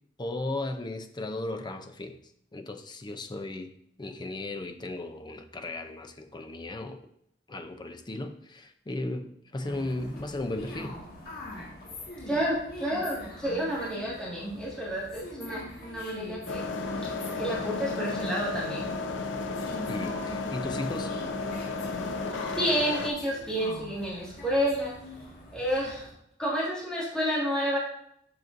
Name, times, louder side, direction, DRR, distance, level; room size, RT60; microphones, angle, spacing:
voice 1, 0.2-2.2 2.5-3.7 4.0-7.0 7.5-11.0 19.9-21.1, left 2 dB, 25° left, 7 dB, 0.5 m, -35 dB
sound 1, 9.6-26.1, left 1 dB, 50° left, 1.8 m, -44 dB
voice 2, 12.3-16.6 17.4-18.9 22.5-24.9 25.5-26.1 26.4-27.8, equal, 5° left, -8 dB, 1.8 m, -30 dB
sound 2, 16.5-23.1, left 3 dB, 70° left, 0.6 m, -33 dB
7.6 x 6.0 x 2.6 m, 0.72 s
head